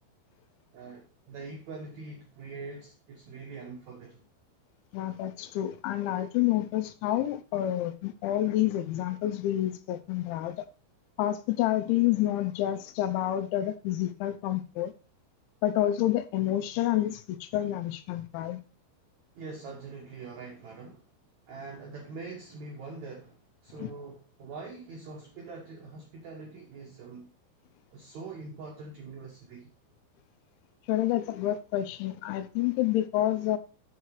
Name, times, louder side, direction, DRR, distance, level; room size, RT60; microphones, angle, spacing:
voice 1, 0.7-4.3 19.3-21.1 21.5-27.3 27.9-29.7, right 4 dB, 80° right, 1.6 m, -43 dB
voice 2, 4.9-10.7 11.2-14.9 15.6-18.6 23.8-23.9 30.9-33.6, left 13 dB, 85° left, 3.0 m, -28 dB
6.8 x 5.7 x 4.7 m
omnidirectional pair, 5.2 m